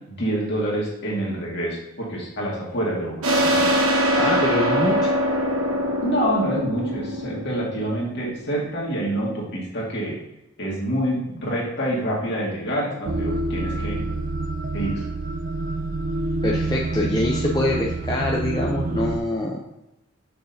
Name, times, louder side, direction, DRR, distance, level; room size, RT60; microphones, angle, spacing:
voice 1, 0.1-3.7 6.0-10.2 10.6-14.0 14.7-15.0, right 1 dB, 50° left, -3 dB, 2.0 m, -27 dB
sound 1, 3.2-8.5, equal, 80° right, 1.3 m, -23 dB
voice 2, 4.2-5.1 16.4-19.6, left 1 dB, 20° left, -2 dB, 0.6 m, -24 dB
sound 2, 13.1-19.2, right 2 dB, 40° right, 0.4 m, -27 dB
6.6 x 5.9 x 2.7 m, 0.91 s
head